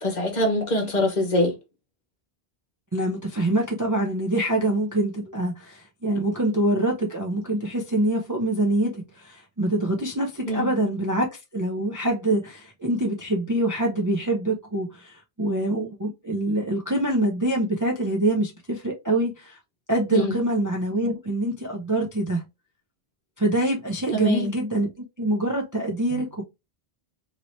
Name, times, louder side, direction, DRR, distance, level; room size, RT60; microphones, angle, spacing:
voice 1, 0.0-1.6 10.5-10.7 20.1-20.4 24.1-24.5 26.1-26.2, left 1 dB, 45° left, 1.1 m, -24 dB
voice 2, 2.9-11.3 11.5-19.6 19.9-22.4 23.4-24.9 25.2-26.4, right 1 dB, 25° right, 0.5 m, -25 dB
2.9 x 2.8 x 3.0 m
omnidirectional pair, 1.0 m